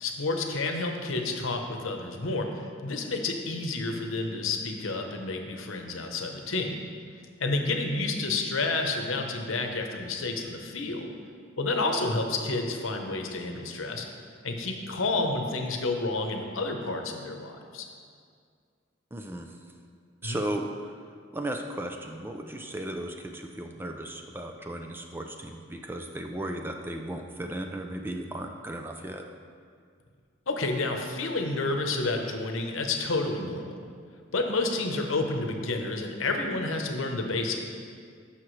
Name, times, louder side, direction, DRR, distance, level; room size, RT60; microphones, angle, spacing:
voice 1, 0.0-6.7 7.4-11.1 11.6-14.1 14.4-17.9 20.2-20.4 30.5-33.8 34.3-37.6, left 3 dB, 85° left, 3 dB, 0.9 m, -30 dB
voice 2, 19.1-19.5 20.2-21.0 21.3-29.3, right 1 dB, 10° right, 3 dB, 0.4 m, -35 dB
14.0 x 5.8 x 3.2 m, 2.2 s
head